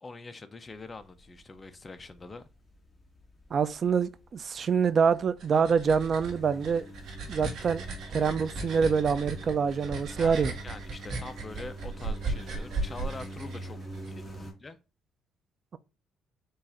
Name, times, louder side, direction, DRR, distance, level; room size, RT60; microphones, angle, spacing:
voice 1, 0.0-2.5 10.2-10.4 10.6-13.8 14.1-14.8, left 3 dB, 20° left, 0.5 m, -44 dB
sound 1, 0.7-14.5, right 1 dB, 5° left, 1.4 m, -46 dB
voice 2, 3.5-6.9 7.3-7.8 8.1-10.5, right 6 dB, 35° right, 0.3 m, -26 dB
sound 2, 5.2-14.1, right 3 dB, 65° right, 1.4 m, -37 dB
4.6 x 2.5 x 4.2 m
cardioid pair, 150°, 0 cm